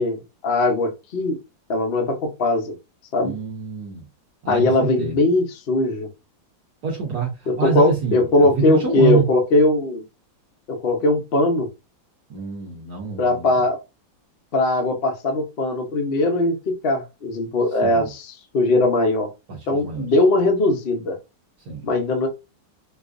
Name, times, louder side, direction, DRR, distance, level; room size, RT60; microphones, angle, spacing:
voice 1, 0.0-1.4 1.7-2.7 3.1-3.3 4.5-6.1 7.5-10.0 10.7-11.7 13.2-13.8 14.5-19.3 19.7-21.2 21.8-22.3, left 2 dB, 65° left, 0.5 m, -20 dB
voice 2, 3.2-4.1 4.4-5.1 6.8-9.3 12.3-13.5 17.8-18.1 19.5-20.1 21.6-21.9, right 6 dB, 60° right, 1.3 m, -26 dB
4.6 x 2.3 x 2.5 m
omnidirectional pair, 2.1 m